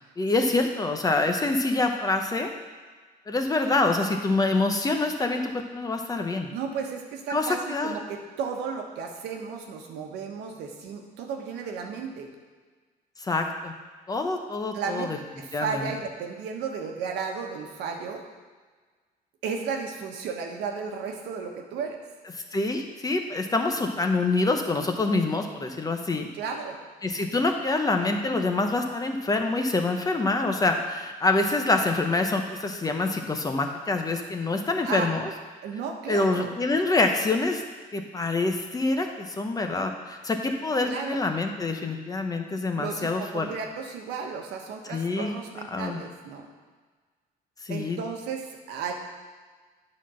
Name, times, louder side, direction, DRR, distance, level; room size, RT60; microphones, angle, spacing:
voice 1, 0.2-2.5 3.3-6.5 7.3-8.0 13.2-13.7 14.1-15.2 15.5-15.9 22.5-26.3 27.0-35.3 36.1-37.6 37.9-43.5 44.9-45.4 45.7-46.0 47.6-48.0, left 3 dB, 20° left, 4 dB, 0.9 m, -26 dB
voice 2, 6.5-12.3 14.7-15.1 15.4-18.2 19.4-22.0 26.3-26.8 34.8-35.1 35.6-36.5 40.8-41.2 42.7-46.5 47.7-48.9, right 5 dB, 85° right, 2 dB, 1.2 m, -34 dB
9.0 x 4.3 x 6.3 m, 1.4 s
cardioid pair, 110°, 17 cm